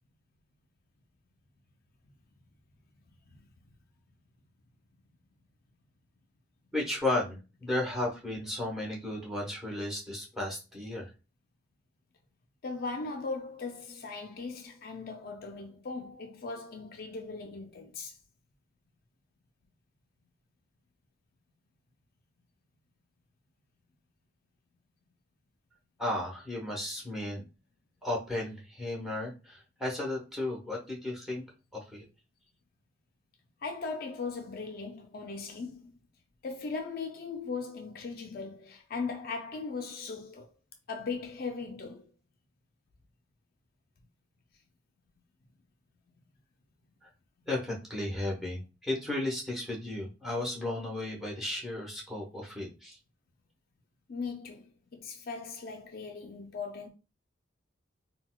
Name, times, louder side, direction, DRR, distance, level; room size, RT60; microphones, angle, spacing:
voice 1, 6.7-11.1 26.0-27.4 28.0-31.4 31.7-32.0 47.0-47.1 47.5-53.0, left 1 dB, ahead, 1.0 m, -34 dB
voice 2, 12.6-18.2 33.6-36.0 36.4-40.5 40.9-42.1 54.1-56.9, left 4 dB, 50° left, 0.4 m, -38 dB
3.9 x 2.2 x 2.2 m
head